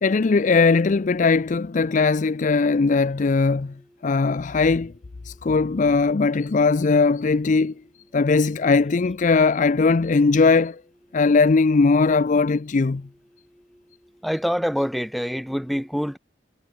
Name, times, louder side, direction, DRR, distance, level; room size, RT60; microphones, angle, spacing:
voice 1, 0.0-3.7 4.0-4.9 5.3-7.7 8.1-10.8 11.1-13.1, left 4 dB, 45° left, 0.5 m, -19 dB
voice 2, 14.2-16.2, equal, ahead, 2.9 m, -25 dB
head